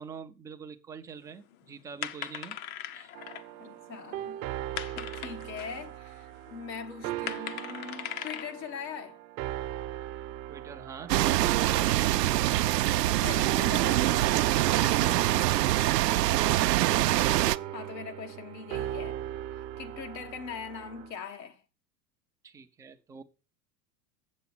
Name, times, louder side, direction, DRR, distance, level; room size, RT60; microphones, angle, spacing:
voice 1, 0.0-2.6 2.9-3.1 10.5-12.6 16.0-16.5 22.4-23.2, right 6 dB, 5° right, 0.4 m, -45 dB
sound 1, 1.2-5.9 6.5-8.7, left 11 dB, 55° left, 0.8 m, -40 dB
sound 2, 3.1-21.1, right 13 dB, 50° right, 0.9 m, -39 dB
voice 2, 3.6-4.5 4.9-9.2 13.2-15.6 17.7-19.2 19.8-21.6, left 6 dB, 80° left, 1.4 m, -42 dB
sound 3, 11.1-17.6, right 16 dB, 75° right, 0.6 m, -24 dB
7.5 x 7.2 x 5.5 m
hypercardioid pair, 95°, 49 cm